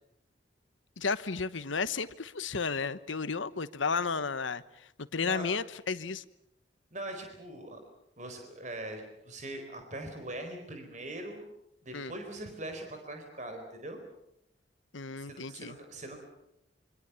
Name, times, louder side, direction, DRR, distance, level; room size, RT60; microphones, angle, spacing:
voice 1, 1.0-4.6 5.0-6.2 11.9-12.1 14.9-15.7, left 5 dB, 90° left, 14 dB, 1.1 m, -33 dB
voice 2, 6.9-7.8 8.2-11.5 11.8-14.0 15.3-16.2, right 1 dB, 40° right, 5 dB, 4.4 m, -41 dB
26.0 x 25.0 x 7.0 m, 0.80 s
head